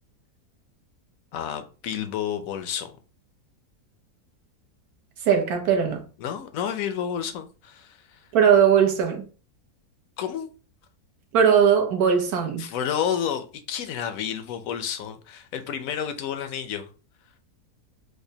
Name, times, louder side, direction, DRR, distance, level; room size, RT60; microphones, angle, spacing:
voice 1, 1.3-3.0 6.2-8.3 10.2-10.5 12.6-16.9, left 8 dB, 70° left, 0.9 m, -30 dB
voice 2, 5.2-6.0 8.3-9.3 11.3-12.7, right 7 dB, 70° right, 1.3 m, -19 dB
5.0 x 2.1 x 2.7 m
omnidirectional pair, 1.7 m